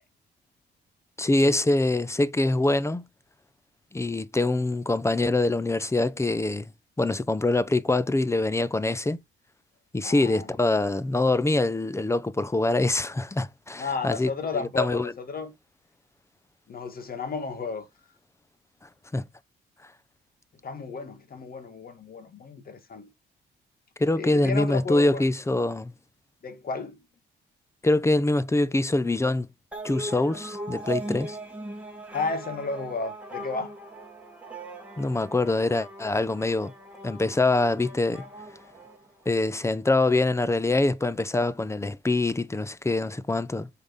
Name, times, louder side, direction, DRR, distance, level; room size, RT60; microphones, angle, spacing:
voice 1, 1.2-3.0 3.9-6.7 7.0-9.2 9.9-15.1 19.1-19.2 24.0-25.9 27.8-29.5 29.8-31.4 35.0-36.7 37.0-38.2 39.3-43.7, left 2 dB, 15° left, 0.8 m, -24 dB
voice 2, 10.0-10.5 13.8-15.5 16.7-17.9 20.6-23.1 24.2-25.3 26.4-27.0 32.1-33.7, left 4 dB, 50° left, 2.1 m, -33 dB
sound 1, 29.7-39.5, right 1 dB, 5° right, 3.2 m, -39 dB
7.0 x 3.9 x 5.5 m
cardioid pair, 90°, 20 cm